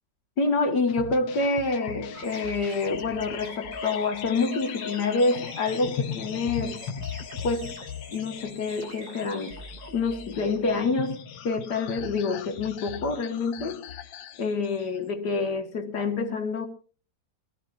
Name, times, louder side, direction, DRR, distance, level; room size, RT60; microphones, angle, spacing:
voice 1, 0.4-6.8 7.4-7.7 8.1-9.6 9.9-13.8 14.4-16.7, left 3 dB, 60° left, 2.4 m, -27 dB
sound 1, 0.9-15.0, left 8 dB, 80° left, 1.6 m, -38 dB
sound 2, 2.1-10.9, right 2 dB, 55° right, 2.5 m, -45 dB
22.5 x 15.0 x 2.6 m
omnidirectional pair, 2.0 m